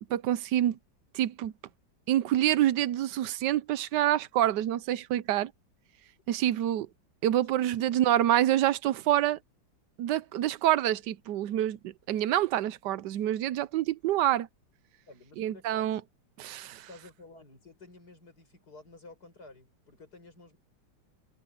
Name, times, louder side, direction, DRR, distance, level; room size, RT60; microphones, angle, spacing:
voice 1, 0.1-0.8 1.1-1.5 2.1-5.5 6.3-6.9 7.2-9.4 10.0-14.5 15.4-16.0 16.4-16.9, right 12 dB, 70° right, 1.2 m, -27 dB
voice 2, 15.1-16.1 16.9-20.6, left 2 dB, 55° left, 8.0 m, -52 dB
omnidirectional pair, 2.1 m